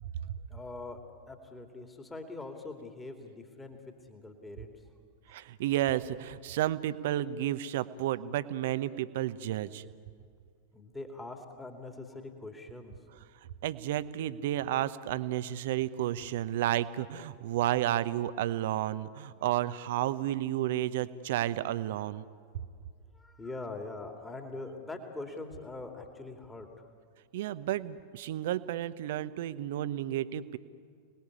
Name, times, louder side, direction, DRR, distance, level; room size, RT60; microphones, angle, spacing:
voice 1, 0.5-4.7 10.7-12.9 23.1-26.7, left 2 dB, 10° left, 4 dB, 2.6 m, -43 dB
voice 2, 5.3-9.8 13.6-22.3 27.3-30.6, right 13 dB, 55° right, 14 dB, 1.0 m, -31 dB
29.0 x 20.0 x 9.8 m, 2.2 s
figure-of-eight pair, 90°, 0 cm